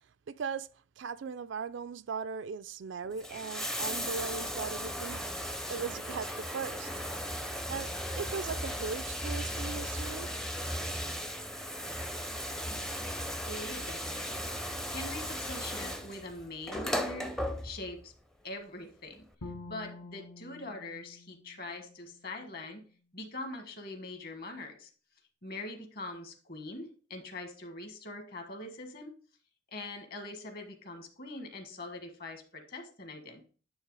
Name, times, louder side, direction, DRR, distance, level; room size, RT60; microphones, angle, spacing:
voice 1, 0.3-0.7 1.0-5.2 5.7-6.9 7.7-10.3, right 5 dB, 60° right, 0.3 m, -38 dB
Bathtub (filling or washing), 3.0-18.0 19.1-19.2, equal, 5° left, 0.5 m, -36 dB
voice 2, 13.5-14.4 14.9-17.3 17.6-18.1 18.4-19.2 19.7-22.8 23.1-24.9 25.4-29.1 29.7-33.4, left 2 dB, 45° left, 1.4 m, -43 dB
Bowed string instrument, 19.4-22.5, left 2 dB, 75° left, 0.8 m, -48 dB
9.5 x 3.3 x 4.7 m
head